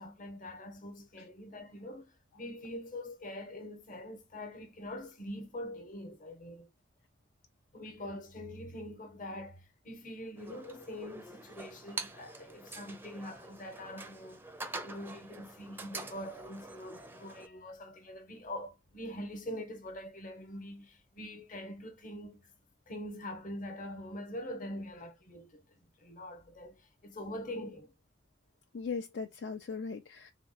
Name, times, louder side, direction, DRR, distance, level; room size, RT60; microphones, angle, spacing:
voice 1, 0.0-6.7 7.7-14.5 14.8-22.5 22.9-25.7 26.0-27.9, left 1 dB, 50° left, 1.0 m, -44 dB
sound 1, 10.4-17.5, right 3 dB, 10° right, 0.4 m, -45 dB
voice 2, 17.2-17.5 28.7-30.3, left 5 dB, 75° left, 0.5 m, -39 dB
3.7 x 2.2 x 4.0 m
head